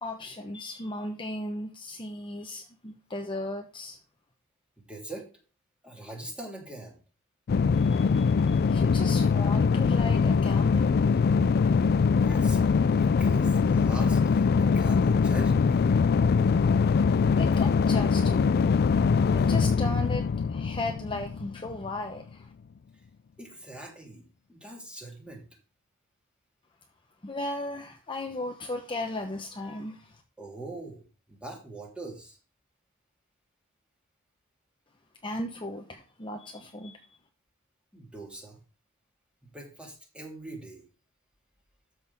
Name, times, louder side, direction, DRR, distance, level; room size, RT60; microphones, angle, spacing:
voice 1, 0.0-4.0 7.7-11.0 17.4-18.8 19.3-22.5 27.2-30.2 35.2-37.0, left 2 dB, 25° left, 3 dB, 1.0 m, -36 dB
voice 2, 4.9-5.3 5.8-7.0 12.2-12.6 12.9-15.9 23.4-25.4 30.4-31.0 31.3-32.4 37.9-38.6 39.5-40.8, right 2 dB, 5° right, -1 dB, 3.3 m, -42 dB
sound 1, 7.5-21.9, left 5 dB, 50° left, 0.3 m, -23 dB
13.0 x 6.4 x 3.6 m, 0.34 s
head